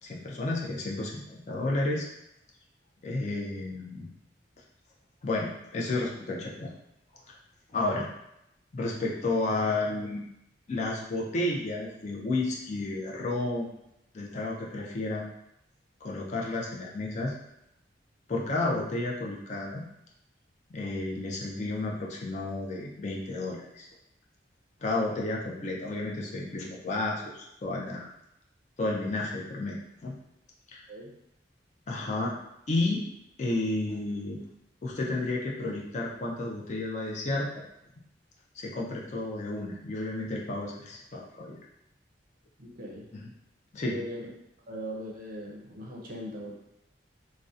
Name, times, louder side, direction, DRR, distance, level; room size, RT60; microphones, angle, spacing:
voice 1, 0.0-2.1 3.0-4.1 5.2-6.7 7.3-7.4 7.7-8.1 8.7-10.2 10.7-13.7 14.1-15.3 16.0-17.3 18.3-19.9 20.7-23.9 24.8-28.1 28.8-30.2 30.7-30.9 31.9-32.3 32.7-33.1 33.4-34.4 34.8-37.7 38.5-41.6 43.1-43.3 43.7-44.0, left 2 dB, 40° left, -3 dB, 0.4 m, -31 dB
voice 2, 42.6-43.1 43.9-44.3 44.7-46.5, equal, 50° right, -2 dB, 0.5 m, -39 dB
2.7 x 2.0 x 2.3 m, 0.83 s
head